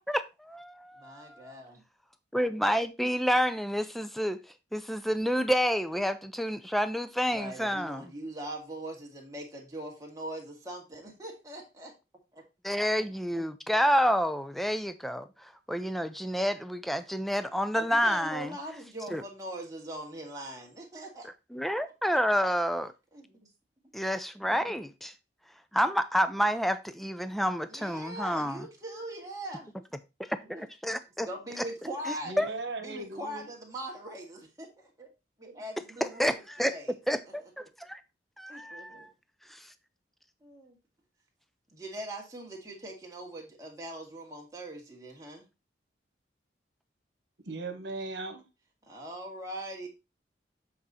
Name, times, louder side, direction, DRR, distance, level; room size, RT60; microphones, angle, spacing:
voice 1, 0.1-1.5 2.3-4.4 4.7-8.1 12.6-18.5 19.1-19.2 21.5-22.9 23.9-25.1 25.7-28.6 30.2-31.3 32.4-32.5 36.0-36.7 37.1-38.0 38.4-39.1 39.5-39.7, equal, ahead, 0.4 m, -29 dB
voice 2, 1.0-1.8 7.3-11.9 12.3-12.4 13.7-13.8 17.7-21.3 23.1-23.5 24.6-24.7 27.7-29.8 30.4-30.7 31.3-32.3 32.8-35.1 35.4-36.4 36.7-36.9 38.5-39.1 40.4-40.8 41.7-45.5 48.9-49.9, right 1 dB, 20° right, 1.9 m, -41 dB
voice 3, 32.2-33.5 47.4-48.4, right 2 dB, 70° right, 1.4 m, -37 dB
7.7 x 4.1 x 4.2 m
head